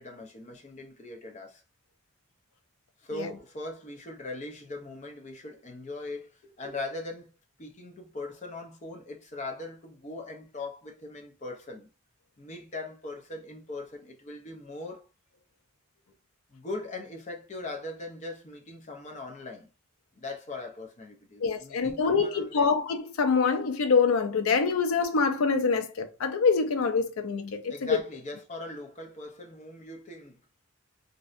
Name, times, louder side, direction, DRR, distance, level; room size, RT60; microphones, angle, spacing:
voice 1, 0.0-1.6 3.0-7.3 7.6-11.9 12.4-15.1 16.5-19.7 20.1-22.7 27.7-30.4, left 2 dB, 35° left, 0.5 m, -40 dB
voice 2, 21.4-28.0, left 5 dB, 85° left, 0.4 m, -25 dB
2.6 x 2.1 x 2.4 m
head